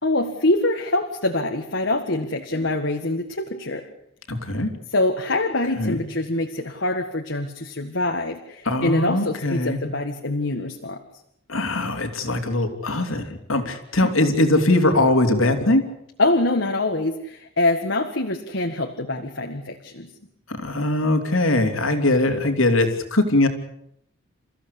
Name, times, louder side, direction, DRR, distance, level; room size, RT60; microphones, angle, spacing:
voice 1, 0.0-3.9 4.9-11.0 14.0-14.1 16.2-20.1, left 2 dB, 65° left, 4 dB, 1.8 m, -24 dB
voice 2, 4.3-4.7 5.8-6.0 8.6-9.8 11.5-15.8 20.5-23.5, left 2 dB, 80° left, 6 dB, 3.2 m, -21 dB
29.0 x 15.0 x 8.5 m, 0.77 s
head